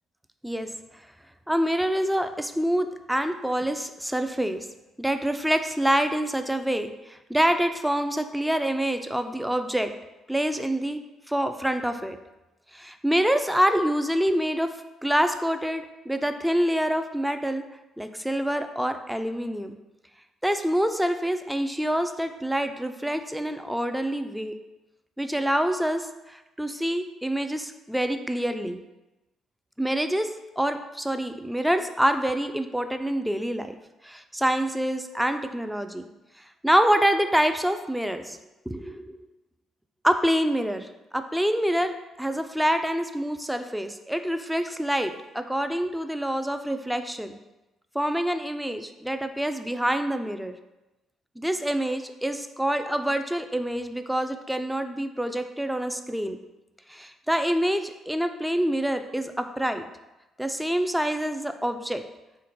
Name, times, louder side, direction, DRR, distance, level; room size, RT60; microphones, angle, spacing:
voice 1, 0.4-1.0 1.5-4.7 5.0-9.9 10.3-11.0 11.3-12.2 12.7-17.6 18.0-19.8 20.4-24.5 25.2-28.8 29.8-33.7 34.0-36.0 36.6-38.4 38.7-39.2 40.0-47.4 47.9-50.6 51.4-56.4 56.9-59.9 60.4-62.0, equal, 5° right, 8 dB, 0.4 m, -26 dB
3.6 x 2.5 x 4.4 m, 1.0 s
hypercardioid pair, 45°, 0 cm